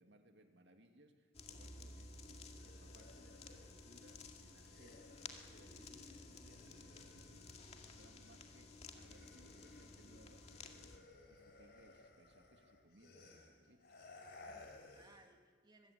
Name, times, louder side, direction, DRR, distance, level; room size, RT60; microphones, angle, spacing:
voice 1, 0.0-10.9 11.3-14.0, right 1 dB, 65° right, 5 dB, 2.4 m, -67 dB
sound 1, 1.3-11.0, left 3 dB, 35° left, 2.2 m, -55 dB
sound 2, 2.3-8.5 8.8-15.3, left 2 dB, 55° left, 4.2 m, -61 dB
sound 3, 8.4-13.2, equal, 40° right, 6.0 m, -76 dB
voice 2, 14.5-15.9, right 2 dB, 20° right, 4 dB, 1.8 m, -67 dB
23.5 x 22.5 x 8.3 m, 1.5 s
head